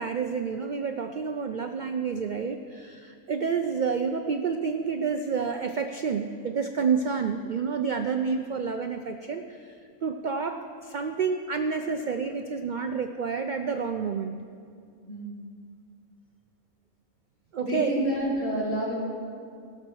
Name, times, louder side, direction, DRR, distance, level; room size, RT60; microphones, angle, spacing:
voice 1, 0.0-14.4 17.5-17.9, right 5 dB, 85° right, 6 dB, 0.4 m, -29 dB
voice 2, 17.6-18.9, equal, 60° left, -7 dB, 3.9 m, -28 dB
17.0 x 6.6 x 6.2 m, 2.3 s
omnidirectional pair, 1.5 m